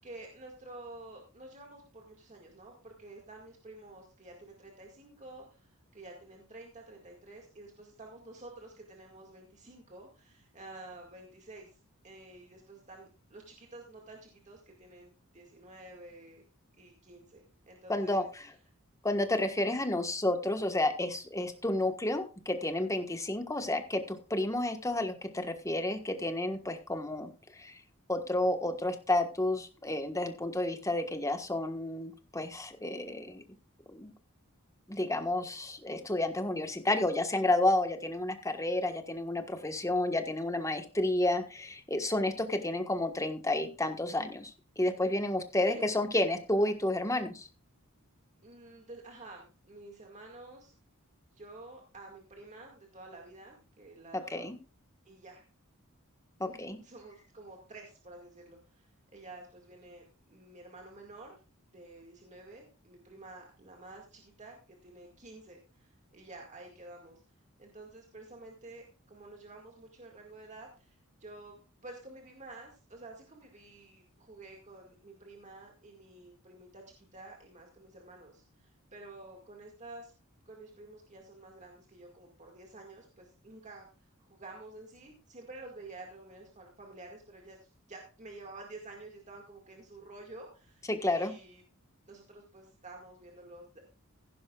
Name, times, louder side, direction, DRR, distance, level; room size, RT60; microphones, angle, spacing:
voice 1, 0.0-16.4 16.8-18.2 45.6-45.8 46.2-46.3 48.4-50.7 51.3-54.5 55.1-55.4 56.4-61.4 61.7-67.2 67.6-80.1 80.5-91.6 92.1-93.8, right 2 dB, 35° right, 1 dB, 2.1 m, -50 dB
voice 2, 17.9-18.4 19.0-27.8 28.1-33.4 33.9-34.1 34.9-47.5 54.1-54.6 56.4-56.8 90.9-91.3, left 1 dB, 15° left, 7 dB, 1.4 m, -31 dB
15.5 x 11.0 x 2.4 m, 0.34 s
head